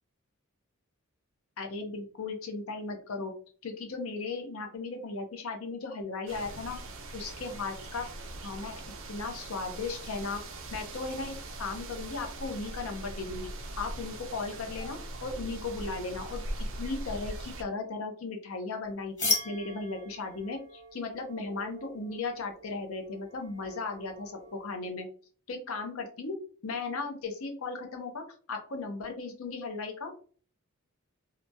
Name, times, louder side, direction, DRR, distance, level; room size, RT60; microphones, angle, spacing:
voice 1, 1.6-3.3 3.6-6.8 7.1-8.1 8.4-8.7 9.1-10.4 10.7-13.5 13.8-16.4 16.8-25.1 25.5-26.4 26.6-28.2 28.5-30.2, left 3 dB, 65° left, 4 dB, 0.6 m, -36 dB
sound 1, 6.3-17.6, right 1 dB, 60° right, 0.5 m, -41 dB
sound 2, 19.2-24.7, left 3 dB, 35° left, 1.3 m, -37 dB
2.8 x 2.2 x 2.6 m, 0.43 s
head